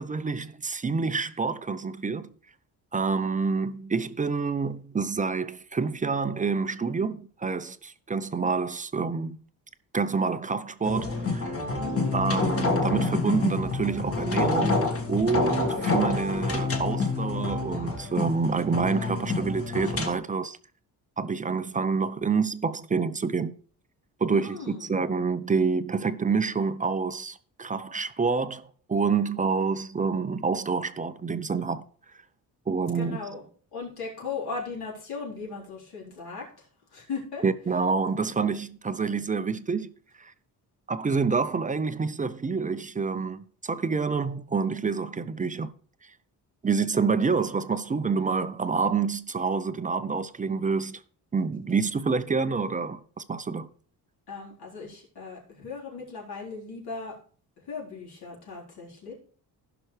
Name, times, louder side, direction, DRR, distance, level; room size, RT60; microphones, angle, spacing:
voice 1, 0.0-2.3 2.9-9.4 9.9-11.6 12.1-14.8 15.1-20.6 21.2-23.5 24.2-31.8 32.7-33.2 37.4-39.9 40.2-40.3 40.9-45.7 46.6-51.0 51.3-53.7, right 5 dB, 20° right, 0.5 m, -27 dB
sound 1, 10.8-20.1, left 3 dB, 35° left, 1.8 m, -28 dB
voice 2, 11.8-12.1 24.3-25.0 32.9-33.4 33.7-36.7 36.9-37.4 54.3-57.1 57.7-59.1, left 4 dB, 70° left, 4.0 m, -37 dB
15.5 x 6.0 x 3.2 m
cardioid pair, 130°, 40 cm